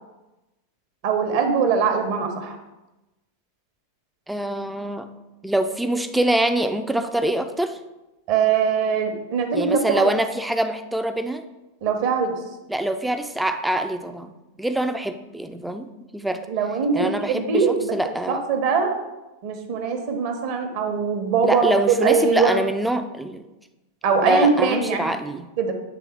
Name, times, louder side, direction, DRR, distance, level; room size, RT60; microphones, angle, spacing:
voice 1, 1.0-2.6 8.3-10.1 11.8-12.4 16.5-17.9 18.3-18.9 19.4-22.5 24.0-25.1 25.6-25.7, right 5 dB, 45° right, 5 dB, 1.0 m, -22 dB
voice 2, 4.3-5.1 5.4-7.8 9.5-11.4 12.7-16.5 16.9-18.4 21.4-23.4 24.2-25.5, right 1 dB, 5° right, 8 dB, 0.4 m, -25 dB
8.2 x 3.5 x 4.4 m, 1.0 s
figure-of-eight pair, 90°, 0 cm